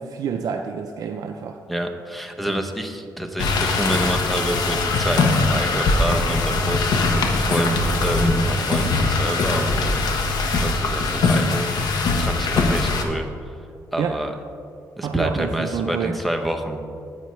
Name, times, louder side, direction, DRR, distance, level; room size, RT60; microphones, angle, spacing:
voice 1, 0.0-1.6 14.0-14.2 15.0-16.2, right 6 dB, 65° right, 4 dB, 0.4 m, -28 dB
voice 2, 1.7-10.0 10.6-11.7 12.1-13.3 13.9-14.3 15.0-16.8, right 1 dB, ahead, 5 dB, 0.7 m, -27 dB
sound 1, 3.4-13.0, left 3 dB, 75° left, 0.9 m, -21 dB
10.0 x 8.2 x 3.2 m, 2.4 s
cardioid pair, 125°, 7 cm